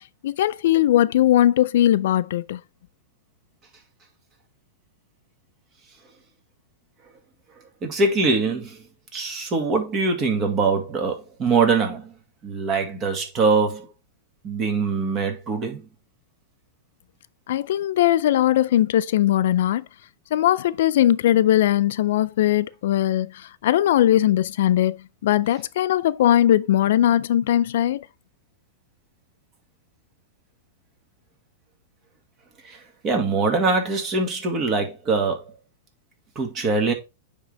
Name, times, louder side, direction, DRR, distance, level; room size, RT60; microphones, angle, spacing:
voice 1, 0.2-2.6 17.5-19.8 20.3-25.0 25.2-28.1, left 12 dB, 70° left, 0.3 m, -19 dB
voice 2, 7.8-8.8 9.1-12.1 12.4-13.9 14.4-15.8 32.6-32.8 33.0-35.4 36.4-36.9, right 4 dB, 25° right, 1.8 m, -23 dB
9.7 x 3.7 x 3.3 m
supercardioid pair, 150°, 0 cm